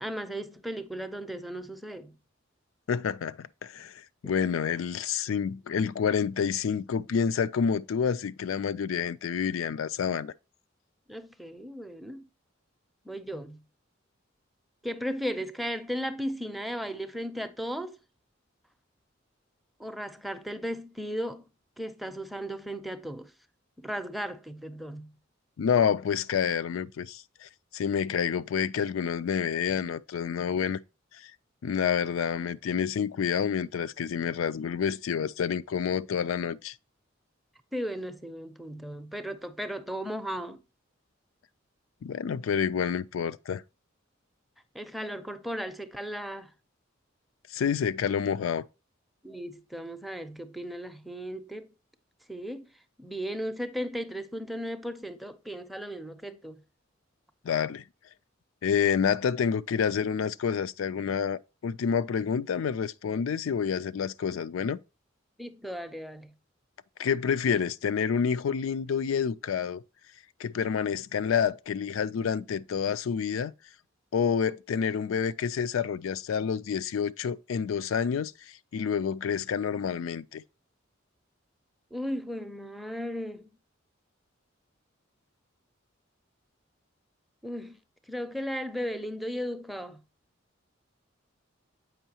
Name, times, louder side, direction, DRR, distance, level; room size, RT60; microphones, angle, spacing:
voice 1, 0.0-2.2 11.1-12.3 13.1-13.6 14.8-18.0 19.8-21.4 21.8-23.3 23.8-25.1 37.7-40.6 44.7-46.5 49.2-51.7 52.3-52.7 53.0-56.6 65.4-66.3 81.9-83.5 87.4-87.8 88.1-90.0, equal, ahead, 0.5 m, -36 dB
voice 2, 2.9-10.3 25.6-30.8 31.1-31.3 31.6-36.8 42.0-43.6 47.5-48.6 57.4-57.8 58.6-64.8 67.0-69.8 70.4-73.5 74.1-80.4, left 7 dB, 85° left, 0.4 m, -28 dB
7.9 x 5.4 x 2.8 m
head